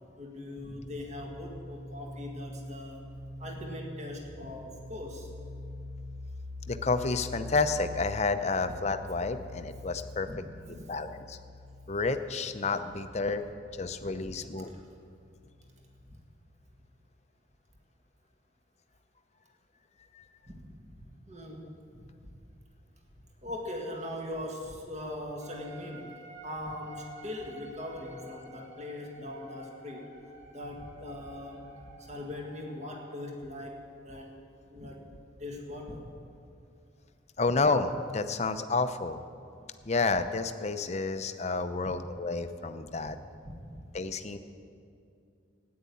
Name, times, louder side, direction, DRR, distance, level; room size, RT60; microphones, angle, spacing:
voice 1, 0.2-3.0 3.4-5.3 10.3-10.4 10.7-10.8 14.2-14.3 14.6-14.8 20.5-20.7 21.0-22.3 23.4-26.1 26.4-30.1 30.5-34.4 34.7-35.0 35.4-36.1 43.5-43.9, left 1 dB, 35° right, 0 dB, 1.8 m, -41 dB
sound 1, 0.6-16.0, left 1 dB, 5° right, 0.4 m, -45 dB
voice 2, 6.7-10.3 10.7-11.4 11.9-13.5 13.8-14.7 20.1-20.2 37.4-39.2 39.9-43.2 43.9-44.4, left 3 dB, 35° left, 9 dB, 0.6 m, -30 dB
sound 2, 25.4-33.1, right 2 dB, 60° right, 2.2 m, -51 dB
14.0 x 9.6 x 8.5 m, 2.4 s
head